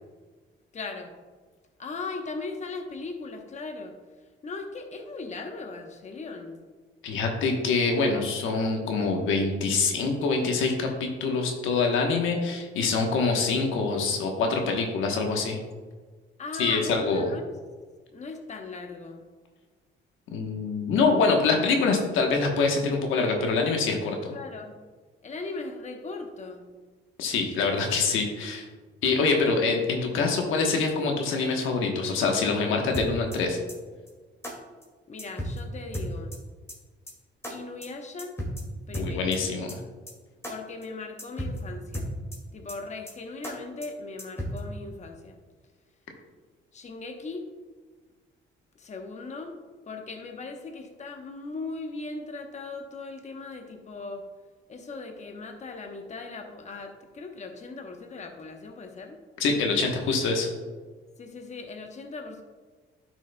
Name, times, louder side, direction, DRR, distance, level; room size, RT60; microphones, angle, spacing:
voice 1, 0.7-1.1 1.8-4.0 4.4-6.6 16.4-17.5 18.1-19.3 24.3-24.8 25.2-26.7 29.2-29.6 35.1-36.4 37.5-38.3 38.9-39.3 40.5-42.1 42.5-45.4 46.7-47.4 48.7-49.5 49.9-54.2 54.7-59.2 61.2-62.4, left 3 dB, 35° left, 4 dB, 0.9 m, -38 dB
voice 2, 7.0-15.6 16.6-17.2 20.3-24.3 27.2-28.6 29.0-33.6 38.9-39.8 59.4-60.5, left 4 dB, 90° left, 2 dB, 1.1 m, -25 dB
sound 1, 32.9-33.4 33.7-33.8 34.1-34.2 34.4-34.5 34.8-34.9 35.2-35.6 35.9-36.4 36.7-36.8 37.1-37.2 37.4-37.5 37.8-37.9 38.2-38.6 38.9-39.4 39.7-39.8 40.1-40.2 40.4-40.5 40.8-40.9 41.2-41.6 41.9-42.4 42.7-42.8 43.1-43.2 43.4-43.5 43.8-43.9 44.2-44.6, equal, 15° left, 2.1 m, -34 dB
11.0 x 6.1 x 2.2 m, 1.4 s
cardioid pair, 90°, 20 cm